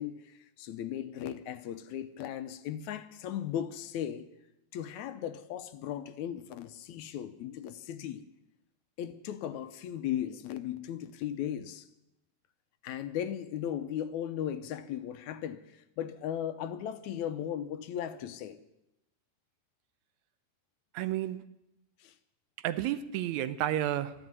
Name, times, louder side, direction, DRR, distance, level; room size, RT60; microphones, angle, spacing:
voice 1, 0.0-4.3 4.7-8.2 9.0-11.9 12.8-18.6 22.0-22.1, left 10 dB, 75° left, 2.1 m, -37 dB
voice 2, 20.9-21.4 22.6-24.1, right 12 dB, 75° right, 1.9 m, -31 dB
13.0 x 11.0 x 9.5 m
omnidirectional pair, 3.5 m